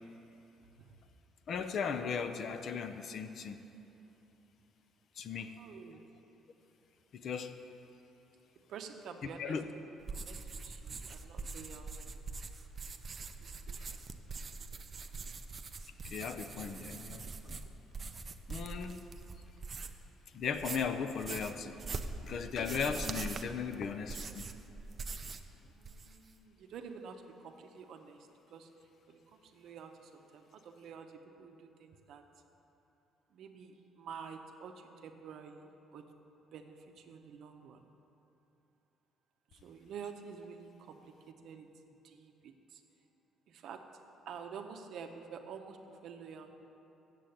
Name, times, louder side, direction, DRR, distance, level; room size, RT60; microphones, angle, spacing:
voice 1, 1.5-3.6 5.2-5.5 7.1-7.5 9.4-9.6 16.0-17.6 18.5-19.0 20.3-21.8 22.2-24.5, left 6 dB, 40° left, 9 dB, 0.5 m, -37 dB
voice 2, 5.3-6.0 8.7-9.6 10.1-12.2 13.4-14.0 25.6-32.2 33.3-36.1 36.5-37.9 39.5-42.8 43.5-43.8 44.3-46.5, right 6 dB, 55° right, 5 dB, 0.7 m, -49 dB
sound 1, 10.0-20.1 20.4-25.5 25.8-26.3, right 4 dB, 25° right, 0.4 m, -43 dB
8.5 x 7.5 x 7.8 m, 2.9 s
cardioid pair, 175°, 0 cm